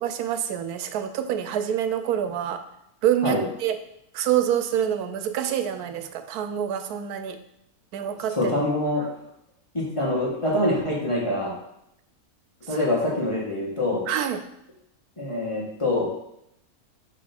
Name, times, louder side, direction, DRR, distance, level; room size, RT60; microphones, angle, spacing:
voice 1, 0.0-2.6 3.0-3.8 4.1-7.4 7.9-8.5 14.1-14.4, right 10 dB, 85° right, 9 dB, 1.1 m, -26 dB
voice 2, 8.3-9.0 9.7-11.5 12.7-14.0 15.2-16.1, left 1 dB, 20° left, -4 dB, 1.6 m, -25 dB
6.2 x 3.4 x 5.9 m, 0.78 s
omnidirectional pair, 1.6 m